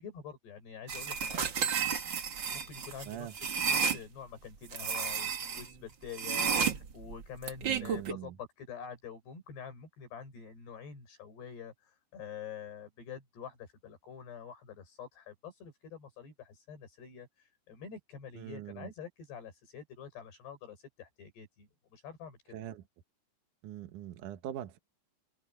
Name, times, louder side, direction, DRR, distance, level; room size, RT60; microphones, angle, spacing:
voice 1, 0.0-1.7 2.5-22.6, left 7 dB, 75° left, 8.3 m, -47 dB
sound 1, 0.9-4.0 4.7-5.7 6.1-8.1, right 6 dB, 85° right, 1.0 m, -32 dB
voice 2, 7.6-8.3 18.4-18.9 22.5-22.8 23.6-24.8, right 11 dB, 70° right, 2.0 m, -42 dB
open air
omnidirectional pair, 4.9 m